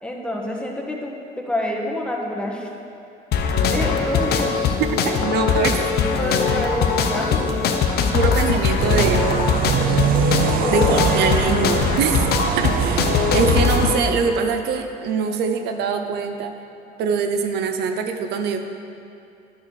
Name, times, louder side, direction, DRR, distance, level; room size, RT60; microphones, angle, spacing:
voice 1, 0.0-2.7 3.7-4.5 5.1-5.2 5.9-7.5 10.6-11.3, left 1 dB, 5° left, -1 dB, 1.5 m, -27 dB
sound 1, 3.3-14.0, left 6 dB, 70° left, 1.0 m, -21 dB
voice 2, 4.9-5.8 8.1-9.3 10.7-12.3 12.6-16.5 17.0-18.6, right 6 dB, 75° right, 6 dB, 0.8 m, -23 dB
sound 2, 8.8-13.9, right 9 dB, 60° right, 0.4 m, -23 dB
10.0 x 6.8 x 6.7 m, 2.5 s
cardioid pair, 110°, 17 cm